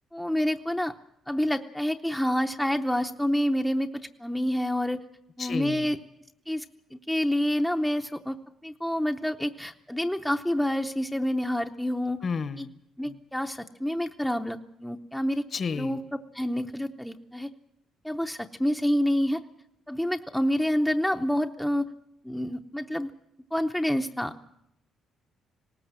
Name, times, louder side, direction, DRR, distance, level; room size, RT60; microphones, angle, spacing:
voice 1, 0.1-0.9 1.3-5.0 5.4-6.0 6.5-6.6 6.9-8.4 8.6-12.2 12.6-12.7 13.0-15.4 15.8-16.0 16.3-17.5 18.0-19.4 19.9-21.9 22.2-23.1 23.5-24.3, equal, 5° left, 4 dB, 0.7 m, -28 dB
voice 2, 5.4-5.9 12.2-12.7 13.0-13.2 15.5-16.0, left 5 dB, 35° left, 13 dB, 1.0 m, -32 dB
19.5 x 18.5 x 7.5 m, 0.78 s
cardioid pair, 150°, 0 cm